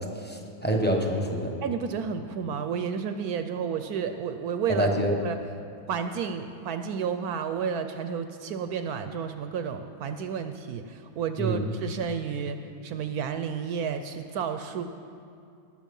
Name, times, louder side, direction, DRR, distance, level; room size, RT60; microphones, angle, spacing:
voice 1, 0.2-1.5 4.7-5.1 11.4-11.6, equal, 10° left, 1 dB, 0.6 m, -26 dB
voice 2, 1.6-4.9 5.2-5.4 5.9-12.6 12.8-14.8, right 7 dB, 70° right, 8 dB, 0.9 m, -31 dB
19.0 x 6.4 x 5.3 m, 2.5 s
omnidirectional pair, 1.9 m